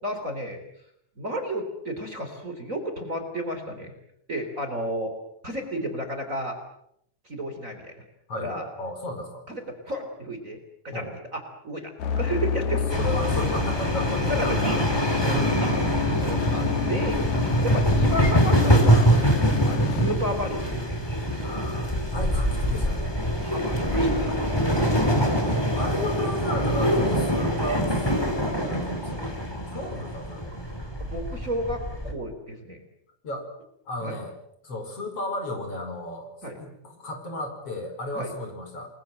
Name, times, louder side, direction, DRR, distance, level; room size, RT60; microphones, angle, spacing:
voice 1, 0.0-0.6 1.2-3.9 4.3-5.1 5.4-6.5 7.3-8.0 8.4-8.7 9.5-10.6 10.8-11.0 11.3-11.8 12.2-13.0 14.3-14.8 15.6-15.7 16.2-19.1 19.7-21.0 23.4-25.0 31.0-32.8 34.0-34.2 36.4-36.6 38.1-38.3, equal, 25° right, 5 dB, 3.8 m, -32 dB
voice 2, 8.3-9.4 10.9-11.1 12.7-14.8 15.2-15.5 21.4-23.1 25.2-30.5 33.2-33.5 33.9-34.3 34.6-36.3 36.6-38.9, left 1 dB, 50° left, 5 dB, 6.0 m, -34 dB
sound 1, 12.0-20.2, left 5 dB, 70° left, 2.7 m, -28 dB
sound 2, 12.9-32.1, equal, 10° left, 3.7 m, -24 dB
29.0 x 21.5 x 7.8 m, 0.75 s
omnidirectional pair, 3.5 m